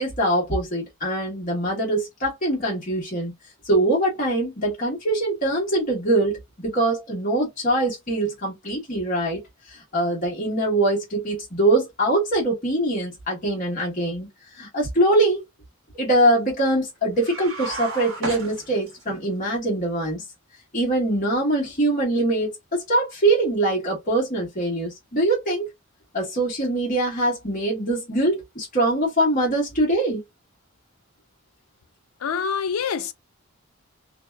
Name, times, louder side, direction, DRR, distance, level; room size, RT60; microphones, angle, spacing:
voice 1, 0.0-3.3 3.7-9.4 9.7-14.3 14.5-15.4 15.9-20.2 20.7-25.7 26.1-30.2, right 1 dB, 40° left, 1.2 m, -23 dB
sound 1, 17.2-19.2, right 2 dB, 70° right, 0.9 m, -33 dB
voice 2, 32.2-33.1, left 6 dB, 80° left, 0.4 m, -26 dB
2.7 x 2.1 x 2.2 m
head